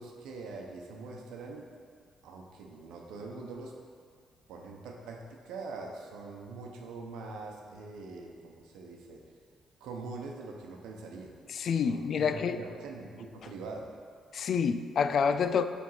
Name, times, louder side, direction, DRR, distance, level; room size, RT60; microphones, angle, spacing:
voice 1, 0.0-1.7 2.2-3.8 4.5-9.2 9.8-11.4 11.8-13.9, right 3 dB, 90° right, 1 dB, 0.8 m, -43 dB
voice 2, 11.5-12.6 14.3-15.6, left 6 dB, 60° left, 10 dB, 0.3 m, -28 dB
7.6 x 3.5 x 5.6 m, 2.1 s
cardioid pair, 90°, 0 cm